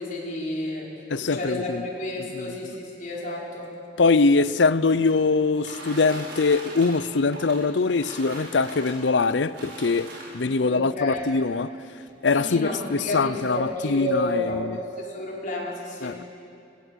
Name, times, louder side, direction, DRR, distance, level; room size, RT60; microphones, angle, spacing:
voice 1, 0.0-0.9 1.2-3.7 10.5-11.2 12.3-16.2, left 1 dB, 45° left, 5.1 m, -31 dB
voice 2, 1.1-1.8 2.2-2.7 4.0-11.7 12.2-14.8 16.0-16.2, left 4 dB, 75° left, 0.6 m, -23 dB
sound 1, 4.4-10.6 11.5-11.6 12.0-12.1 12.4-12.8, right 2 dB, 70° right, 6.1 m, -41 dB
23.5 x 20.0 x 7.5 m
head